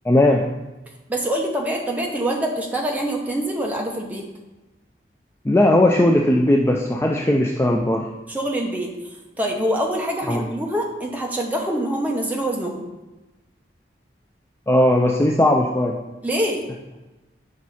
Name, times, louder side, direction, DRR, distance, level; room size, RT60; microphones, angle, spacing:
voice 1, 0.1-0.4 5.4-8.0 10.3-10.4 14.7-16.0, left 1 dB, 15° left, 0 dB, 0.3 m, -18 dB
voice 2, 1.1-4.2 8.3-9.0 9.4-12.8 16.2-16.7, right 1 dB, 10° right, 0 dB, 0.8 m, -25 dB
6.2 x 5.1 x 4.2 m, 1.1 s
head